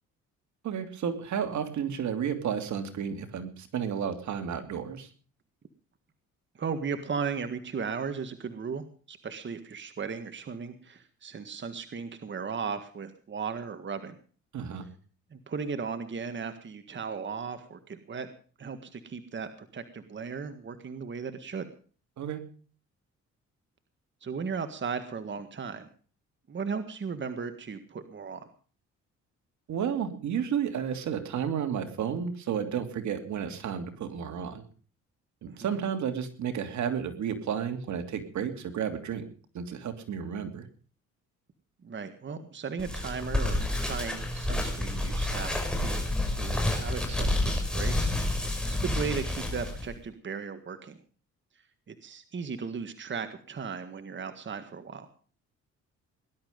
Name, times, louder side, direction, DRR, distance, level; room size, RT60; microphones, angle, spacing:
voice 1, 0.6-5.1 14.5-14.9 22.2-22.4 29.7-34.6 35.4-39.3 39.5-40.6, right 8 dB, 70° right, 7 dB, 2.8 m, -32 dB
voice 2, 6.6-14.2 15.3-18.3 18.6-21.7 24.2-25.9 26.5-28.5 35.5-35.8 41.8-51.0 51.9-55.1, right 5 dB, 40° right, 9 dB, 1.7 m, -36 dB
sound 1, 42.8-49.9, left 1 dB, 5° left, 5.6 m, -29 dB
19.5 x 11.5 x 5.2 m, 0.41 s
cardioid pair, 90°, 30 cm